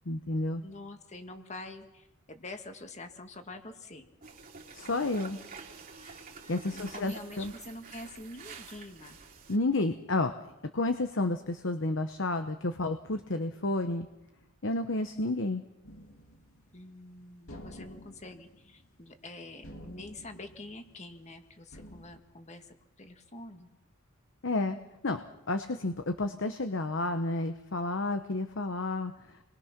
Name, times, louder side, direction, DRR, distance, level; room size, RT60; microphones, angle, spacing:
voice 1, 0.1-0.6 4.7-5.4 6.5-7.5 9.5-10.3 10.7-14.1 14.6-15.6 24.4-24.8 25.0-25.2 25.5-29.1, left 2 dB, 60° left, 8 dB, 1.0 m, -31 dB
voice 2, 0.6-4.0 6.7-9.2 16.7-23.7, left 2 dB, 35° left, 6 dB, 1.8 m, -46 dB
sound 1, 4.2-9.6, right 5 dB, 45° right, 2.8 m, -48 dB
sound 2, 15.8-17.1 17.5-19.4 19.6-21.3 21.7-22.2, equal, 85° left, 2.8 m, -50 dB
29.0 x 22.0 x 6.0 m, 0.96 s
head